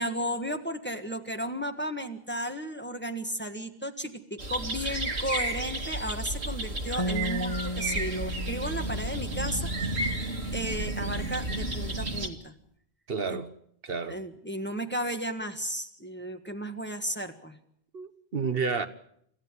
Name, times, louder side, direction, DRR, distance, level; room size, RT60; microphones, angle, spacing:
voice 1, 0.0-12.5 13.3-13.4 14.1-17.6, equal, 10° left, 1.7 m, -34 dB
sound 1, 4.4-12.3, right 1 dB, 90° right, 2.4 m, -32 dB
sound 2, 7.0-10.2, equal, 30° left, 1.3 m, -35 dB
voice 2, 13.1-13.5 13.8-14.2 17.9-18.9, right 5 dB, 65° right, 1.4 m, -30 dB
26.5 x 15.0 x 9.8 m
omnidirectional pair, 1.1 m